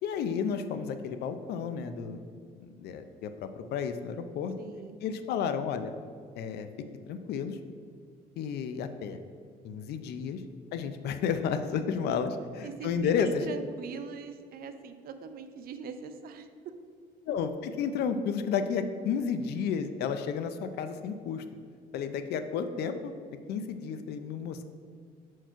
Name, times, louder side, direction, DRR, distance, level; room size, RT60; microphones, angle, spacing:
voice 1, 0.0-2.2 2.6-4.5 5.0-5.9 6.4-6.7 7.1-7.6 8.4-9.2 9.6-10.4 10.7-12.3 12.6-13.3 17.3-21.4 21.9-23.1 23.5-24.6, left 7 dB, 75° left, 10 dB, 0.5 m, -32 dB
voice 2, 4.6-5.0 11.7-11.9 12.6-16.5, right 6 dB, 60° right, 9 dB, 0.6 m, -42 dB
5.9 x 4.6 x 4.5 m, 2.2 s
cardioid pair, 110°, 17 cm